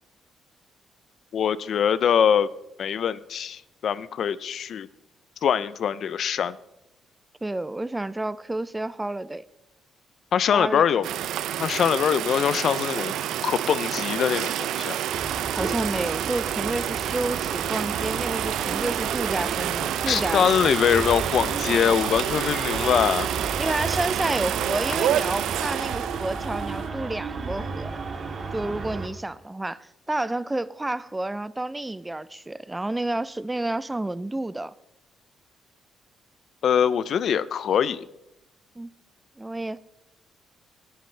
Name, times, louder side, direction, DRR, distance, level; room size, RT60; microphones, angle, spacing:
voice 1, 1.3-2.5 2.8-4.9 5.4-6.6 10.3-11.1 11.6-13.1 13.4-15.0 20.1-23.3 36.6-38.1, left 8 dB, 60° left, 0.5 m, -23 dB
voice 2, 7.4-9.4 10.5-11.1 15.5-20.6 23.6-28.0 28.5-34.7 38.8-38.9 39.4-39.8, right 2 dB, 15° right, 0.4 m, -30 dB
sound 1, 11.0-26.9, right 11 dB, 80° right, 0.5 m, -28 dB
sound 2, 15.1-29.1, right 4 dB, 45° right, 1.9 m, -34 dB
19.5 x 9.2 x 3.3 m
cardioid pair, 90°, 0 cm